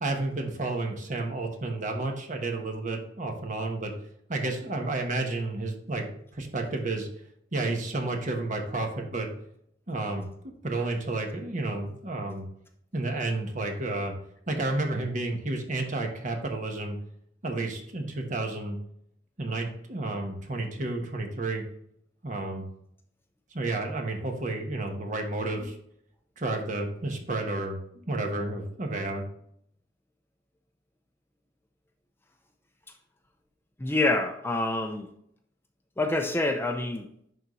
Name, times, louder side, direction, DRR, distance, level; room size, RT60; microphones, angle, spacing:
voice 1, 0.0-3.9 4.3-6.1 6.3-7.1 7.5-9.3 9.9-10.3 10.6-12.5 12.9-14.1 14.5-17.0 17.4-18.8 19.4-21.6 22.2-22.7 23.5-25.7 26.4-29.2, right 2 dB, 45° right, 3 dB, 1.2 m, -31 dB
voice 2, 33.8-35.1 36.0-37.1, left 2 dB, 15° left, 5 dB, 0.5 m, -26 dB
10.5 x 3.9 x 3.1 m, 0.70 s
head